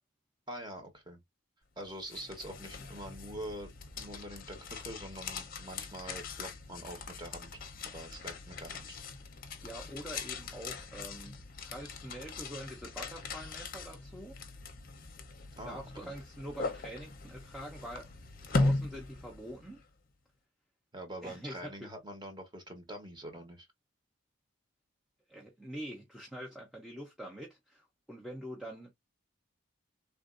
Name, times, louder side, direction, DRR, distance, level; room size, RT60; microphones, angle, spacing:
voice 1, 0.5-1.2 1.8-9.0 15.6-16.1 20.9-23.7, right 1 dB, 20° right, 1.0 m, -45 dB
sound 1, 1.8-19.8, left 3 dB, 45° left, 0.7 m, -39 dB
voice 2, 9.6-11.4 11.6-14.4 15.6-18.1 18.5-19.8 21.2-21.9 25.3-28.9, equal, ahead, 0.6 m, -45 dB
3.5 x 2.5 x 2.5 m
head